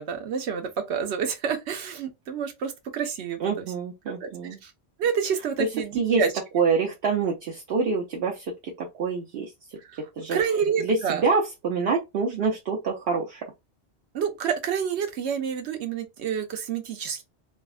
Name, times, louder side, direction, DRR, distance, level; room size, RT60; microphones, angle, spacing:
voice 1, 0.0-3.7 4.2-4.3 4.6-4.7 5.0-6.3 9.8-10.0 10.3-11.3 14.1-17.2, right 7 dB, 90° right, 1.0 m, -28 dB
voice 2, 3.4-4.6 5.6-5.7 6.0-6.2 6.5-9.5 10.2-10.4 10.8-13.4, right 4 dB, 70° right, 0.8 m, -26 dB
3.4 x 2.0 x 2.3 m
omnidirectional pair, 1.1 m